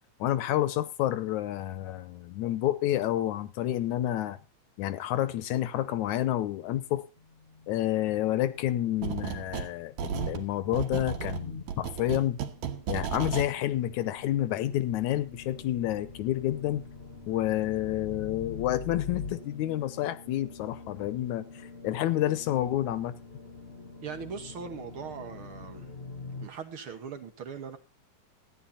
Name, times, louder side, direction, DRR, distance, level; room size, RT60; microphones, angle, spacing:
voice 1, 0.2-4.4 4.8-7.0 7.7-12.4 12.9-16.9 17.3-23.1, left 13 dB, 80° left, 2.2 m, -29 dB
sound 1, 7.2-26.5, left 4 dB, 35° left, 1.1 m, -45 dB
sound 2, 9.0-9.7 10.0-13.5, right 7 dB, 75° right, 2.4 m, -34 dB
voice 2, 24.0-25.9 26.4-27.8, right 6 dB, 55° right, 1.8 m, -40 dB
14.5 x 10.5 x 4.2 m
omnidirectional pair, 3.3 m